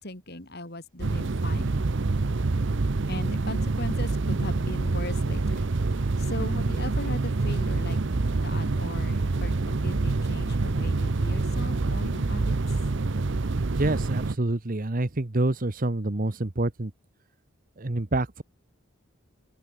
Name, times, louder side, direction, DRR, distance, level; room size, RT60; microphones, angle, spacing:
voice 1, 0.0-1.9 3.1-12.6, left 1 dB, 50° left, 5.1 m, -39 dB
sound 1, 1.0-14.4, right 3 dB, 60° right, 0.7 m, -26 dB
voice 2, 13.8-16.9 17.8-18.4, right 2 dB, 40° right, 1.1 m, -27 dB
head